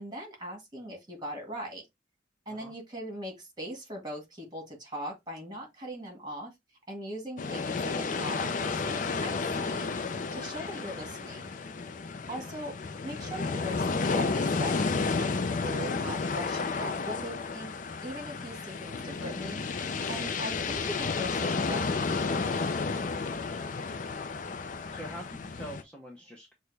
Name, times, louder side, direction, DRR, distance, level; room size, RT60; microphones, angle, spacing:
voice 1, 0.0-1.8 2.5-6.5 6.9-9.9 10.3-11.5 12.3-12.7 13.0-19.6 20.1-22.2, equal, 20° right, 1.8 m, -40 dB
sound 1, 7.4-25.8, left 4 dB, 45° left, 0.4 m, -32 dB
voice 2, 24.9-26.5, equal, 5° left, 0.7 m, -45 dB
6.2 x 2.2 x 3.2 m
head